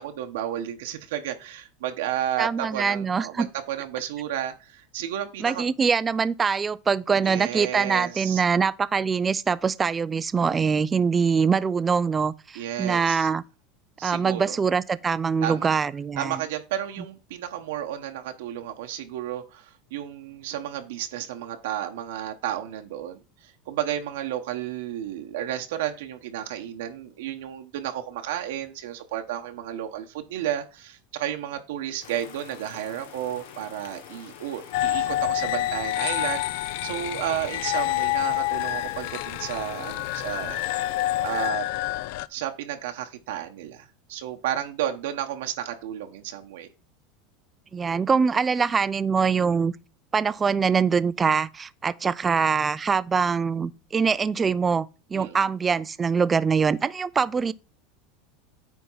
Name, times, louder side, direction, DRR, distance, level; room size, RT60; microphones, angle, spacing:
voice 1, 0.0-5.7 7.2-8.4 12.5-13.3 14.0-14.6 15.4-15.7 16.2-40.6 41.2-41.7 42.3-46.7 55.1-55.5, right 11 dB, 85° right, 1.0 m, -32 dB
voice 2, 2.4-3.5 5.4-13.4 14.0-16.4 47.7-49.7 50.1-57.5, right 5 dB, 15° right, 0.3 m, -23 dB
sound 1, 32.0-41.5, left 8 dB, 85° left, 1.3 m, -46 dB
sound 2, 34.7-42.3, left 15 dB, 65° left, 0.4 m, -27 dB
9.4 x 3.5 x 5.5 m
supercardioid pair, 150°, 0 cm